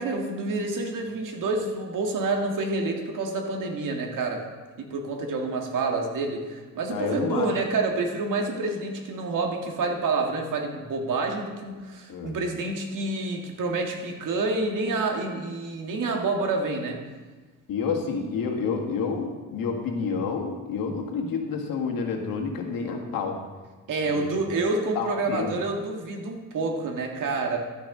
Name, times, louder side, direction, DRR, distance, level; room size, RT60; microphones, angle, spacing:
voice 1, 0.0-4.4 4.8-17.0 23.9-27.6, right 3 dB, 70° right, 2 dB, 1.7 m, -28 dB
voice 2, 6.9-7.5 12.1-12.4 17.7-23.4 24.1-24.2 24.9-25.5, left 5 dB, 85° left, 2 dB, 1.7 m, -29 dB
12.0 x 9.0 x 3.7 m, 1.3 s
cardioid pair, 125°, 33 cm